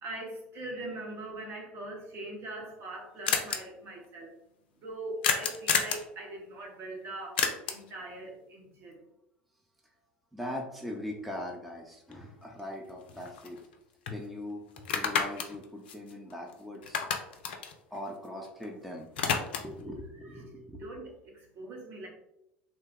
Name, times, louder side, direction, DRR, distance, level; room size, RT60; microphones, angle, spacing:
voice 1, 0.0-4.4 4.8-9.0 20.2-20.5 20.8-22.1, right 2 dB, 45° right, 0 dB, 0.9 m, -42 dB
sound 1, 2.3-2.4 2.6-2.7 2.9-3.0 3.3-3.6 5.2-6.1 7.4-7.9 12.1-12.2 12.6-13.7 14.1-14.2 14.8-16.5 16.8-18.7 18.9-19.8, left 6 dB, 70° left, 0.4 m, -31 dB
voice 2, 10.3-13.6 14.1-14.6 14.9-17.0 17.9-19.1 19.6-20.9, left 1 dB, ahead, 0 dB, 0.6 m, -40 dB
3.0 x 2.1 x 3.4 m, 0.83 s
figure-of-eight pair, 75°, 6 cm